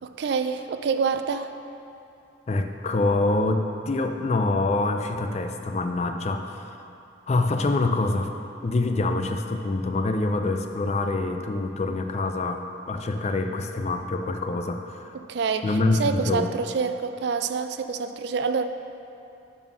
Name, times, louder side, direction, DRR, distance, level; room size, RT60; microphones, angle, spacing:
voice 1, 0.0-1.5 15.1-18.6, right 5 dB, 55° right, 9 dB, 0.3 m, -27 dB
voice 2, 2.5-6.8 7.3-8.3 8.6-12.6 12.9-15.1 15.6-16.5, left 2 dB, 35° left, 6 dB, 0.3 m, -25 dB
7.2 x 4.1 x 6.0 m, 2.8 s
head